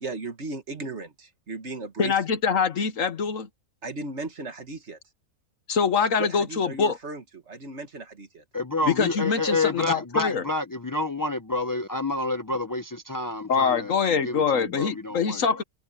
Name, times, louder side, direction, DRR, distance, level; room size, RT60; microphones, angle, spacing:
voice 1, 0.0-2.2 3.8-5.0 6.2-8.4, right 2 dB, 50° right, 2.0 m, -36 dB
voice 2, 2.0-3.5 5.7-7.0 8.9-10.5 13.5-15.6, left 6 dB, 60° left, 1.5 m, -24 dB
voice 3, 8.5-13.9 14.2-15.4, left 2 dB, 30° left, 0.3 m, -29 dB
omnidirectional pair, 1.6 m